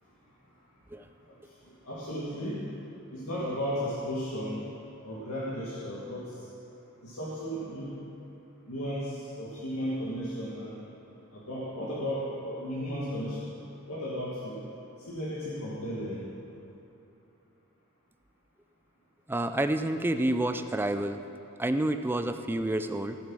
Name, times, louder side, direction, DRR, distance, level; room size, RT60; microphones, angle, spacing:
voice 1, 1.8-2.6 3.1-4.6 5.0-6.3 7.0-7.9 8.7-10.8 11.3-13.5 13.9-14.6 15.1-16.2, equal, 85° left, -7 dB, 1.9 m, -34 dB
voice 2, 19.3-21.2 21.6-23.2, right 1 dB, 10° right, 8 dB, 0.4 m, -29 dB
15.5 x 7.6 x 6.2 m, 2.9 s
head